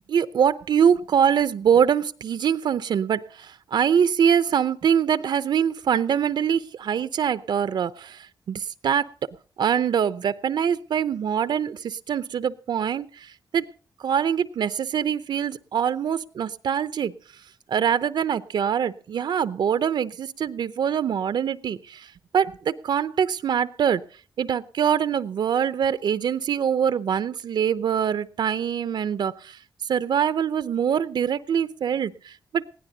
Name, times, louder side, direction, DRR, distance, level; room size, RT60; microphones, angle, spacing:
voice 1, 0.1-9.1 9.6-13.7 14.0-17.1 17.7-24.0 24.4-29.6 29.9-32.6, right 8 dB, 75° right, 14 dB, 0.7 m, -24 dB
20.5 x 16.5 x 2.8 m, 0.38 s
wide cardioid pair, 150°, 8 cm